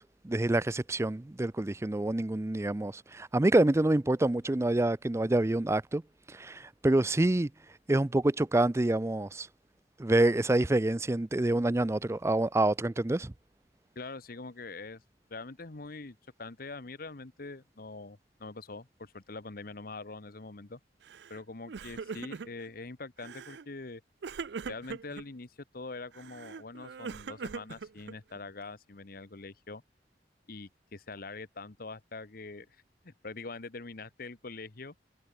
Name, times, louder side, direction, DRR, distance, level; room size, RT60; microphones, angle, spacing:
voice 1, 0.0-6.0 6.3-7.5 7.9-9.5 10.0-13.3, right 1 dB, 15° right, 0.5 m, -27 dB
voice 2, 13.9-15.0 15.3-20.8 21.3-24.0 24.7-29.8 30.5-32.7 33.0-34.9, left 3 dB, 55° left, 1.1 m, -44 dB
Crying sobbing, 21.1-21.4 21.7-22.7 23.2-23.7 24.2-25.2 26.1-28.4, right 5 dB, 75° right, 0.5 m, -41 dB
head